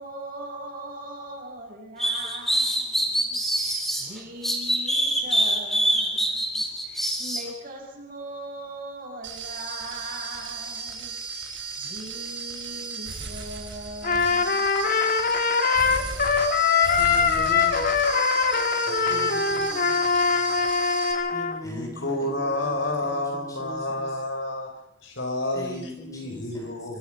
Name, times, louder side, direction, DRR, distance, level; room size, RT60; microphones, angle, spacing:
voice 1, 0.0-15.3, right 1 dB, 45° right, 0 dB, 7.5 m, -40 dB
sound 1, 2.0-4.0 4.4-7.4, right 1 dB, ahead, 3.6 m, -24 dB
sound 2, 9.2-21.1, right 5 dB, 65° right, 4.9 m, -36 dB
Trumpet, 14.0-21.6, left 5 dB, 45° left, 1.8 m, -22 dB
voice 2, 16.8-17.9 19.0-20.0 21.3-24.1 25.5-27.0, equal, 15° left, 2 dB, 3.2 m, -41 dB
voice 3, 18.9-20.7 21.6-24.7 25.0-27.0, left 1 dB, 70° left, 3 dB, 5.7 m, -31 dB
25.0 x 25.0 x 5.3 m, 0.76 s
head